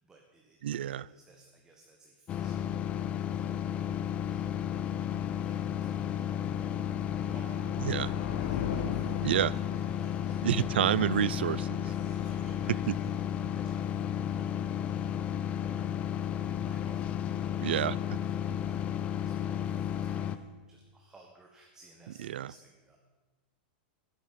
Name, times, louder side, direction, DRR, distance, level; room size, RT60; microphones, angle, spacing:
voice 1, 0.0-2.8 3.1-3.3 4.1-6.2 6.5-10.6 11.8-16.0 16.6-18.0 18.3-23.0, right 3 dB, 10° right, 1 dB, 1.4 m, -59 dB
voice 2, 0.6-1.1 7.8-8.1 9.2-9.5 10.4-11.8 12.9-13.0 17.6-17.9 22.3-22.5, right 11 dB, 85° right, 22 dB, 0.5 m, -28 dB
sound 1, 2.3-20.4, left 9 dB, 20° left, 0.5 m, -33 dB
sound 2, 4.4-13.0, left 6 dB, 60° left, 1.9 m, -42 dB
13.5 x 11.0 x 7.6 m, 1.3 s
supercardioid pair, 160°, 6 cm